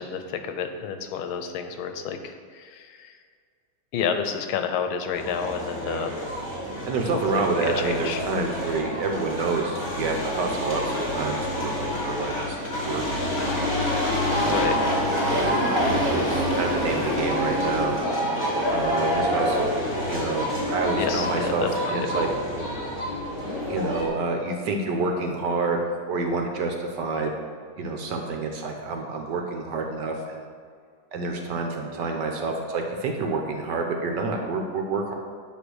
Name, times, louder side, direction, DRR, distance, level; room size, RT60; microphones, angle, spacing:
voice 1, 0.0-3.1 3.9-6.2 7.3-8.2 14.4-14.7 21.0-22.0, left 7 dB, 90° left, 7 dB, 1.5 m, -30 dB
sound 1, 5.1-24.1, equal, 25° left, 2.1 m, -27 dB
voice 2, 6.8-13.3 14.3-14.8 15.3-15.7 16.0-18.0 18.7-19.7 20.1-22.3 23.7-25.8 26.1-27.3 27.8-30.4 31.1-35.1, right 3 dB, 65° right, 2 dB, 1.3 m, -28 dB
9.5 x 3.2 x 6.3 m, 2.1 s
omnidirectional pair, 2.2 m